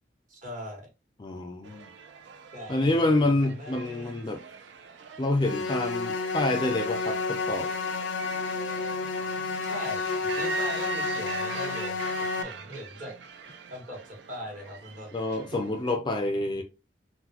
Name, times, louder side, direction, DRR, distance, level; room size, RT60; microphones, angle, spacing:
voice 1, 0.3-0.9 2.5-4.2 9.6-12.0 12.4-13.1 13.7-15.1 15.5-15.6, equal, 45° right, 1.4 m, -41 dB
voice 2, 1.2-1.9 2.7-4.4 5.2-7.7 15.1-16.6, left 2 dB, 25° left, 0.4 m, -27 dB
sound 1, 1.6-16.0, right 5 dB, 75° right, 0.5 m, -41 dB
sound 2, 5.4-12.4, left 4 dB, 90° left, 0.5 m, -31 dB
3.8 x 2.2 x 2.8 m
head